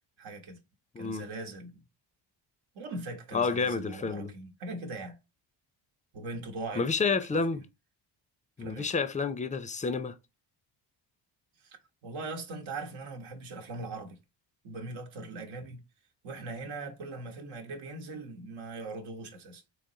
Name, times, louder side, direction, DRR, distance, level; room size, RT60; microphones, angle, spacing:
voice 1, 0.2-0.6 1.0-1.8 2.7-5.2 6.1-6.9 8.6-8.9 11.6-11.8 12.0-14.2 14.6-15.8 16.2-19.6, right 3 dB, 80° right, 1.0 m, -40 dB
voice 2, 3.3-4.3 6.8-7.6 8.6-10.1, left 4 dB, 15° left, 0.4 m, -29 dB
4.0 x 3.0 x 2.7 m
cardioid pair, 80°, 47 cm